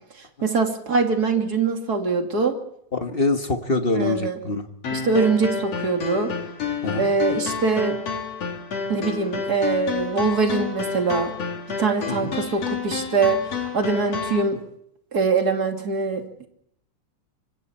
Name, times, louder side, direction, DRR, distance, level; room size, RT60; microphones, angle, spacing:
voice 1, 0.4-2.6 3.9-4.4 4.9-6.3 7.0-8.0 8.9-11.3 11.8-14.6 15.1-16.5, right 4 dB, 35° right, 4 dB, 2.9 m, -23 dB
voice 2, 2.9-4.7 6.8-7.1 12.2-12.3, left 3 dB, 40° left, 5 dB, 0.7 m, -24 dB
sound 1, 4.8-14.4, left 6 dB, 55° left, 4.1 m, -30 dB
26.0 x 24.5 x 4.4 m, 0.71 s
omnidirectional pair, 3.4 m